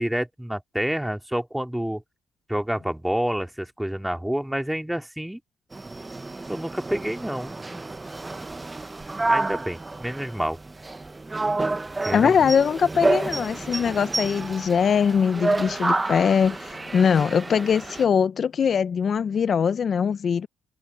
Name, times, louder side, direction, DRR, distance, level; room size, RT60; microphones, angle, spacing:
voice 1, 0.0-2.0 2.5-5.4 6.5-7.8 9.3-10.6 12.0-12.3, right 1 dB, 5° right, 2.7 m, -28 dB
sound 1, 5.7-18.0, right 2 dB, 20° right, 1.0 m, -29 dB
voice 2, 12.1-20.5, left 7 dB, 50° left, 0.8 m, -22 dB
open air
supercardioid pair, 70°, 0 cm